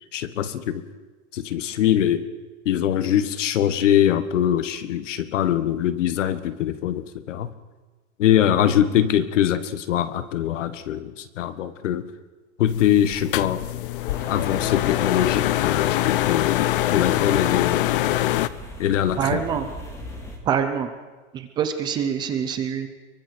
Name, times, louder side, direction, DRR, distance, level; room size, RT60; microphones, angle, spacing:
voice 1, 0.1-0.8 1.3-2.3 2.6-7.5 8.2-12.0 12.6-13.7 14.3-16.6 16.9-17.8 18.8-19.4, left 10 dB, 80° left, 12 dB, 1.7 m, -22 dB
sound 1, 12.7-18.5, left 15 dB, 45° left, 0.7 m, -24 dB
sound 2, 14.1-20.4, left 1 dB, 10° left, 2.1 m, -39 dB
voice 2, 19.2-19.7 20.5-20.9 21.3-22.9, right 8 dB, 10° right, 8 dB, 0.6 m, -25 dB
25.0 x 23.0 x 4.6 m, 1.3 s
supercardioid pair, 180°, 36 cm